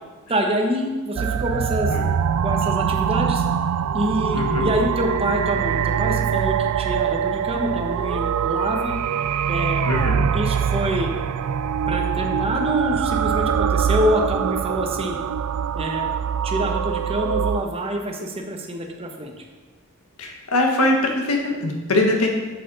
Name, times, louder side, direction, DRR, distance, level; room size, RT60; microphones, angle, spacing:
voice 1, 0.3-1.9 2.4-3.4 3.9-8.9 9.5-9.8 10.3-11.1 11.9-15.2 15.7-16.1 16.4-19.4, equal, 25° right, 3 dB, 0.9 m, -26 dB
sound 1, 1.2-17.7, right 8 dB, 85° right, 0.3 m, -23 dB
voice 2, 4.3-4.7 9.8-10.2 20.2-22.3, left 2 dB, 80° left, 1 dB, 1.5 m, -22 dB
7.8 x 7.5 x 4.0 m, 1.3 s
head